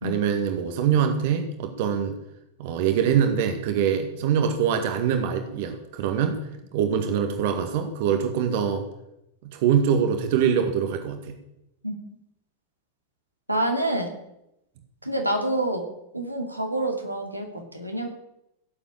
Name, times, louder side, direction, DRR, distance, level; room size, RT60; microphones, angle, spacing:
voice 1, 0.0-2.2 2.6-6.4 6.7-8.8 9.4-11.3, right 8 dB, 50° right, 6 dB, 2.0 m, -24 dB
voice 2, 13.5-14.1 15.0-15.8 16.1-18.1, right 1 dB, 90° right, 2 dB, 2.8 m, -27 dB
17.0 x 8.1 x 8.9 m, 0.84 s
figure-of-eight pair, 90°, 0 cm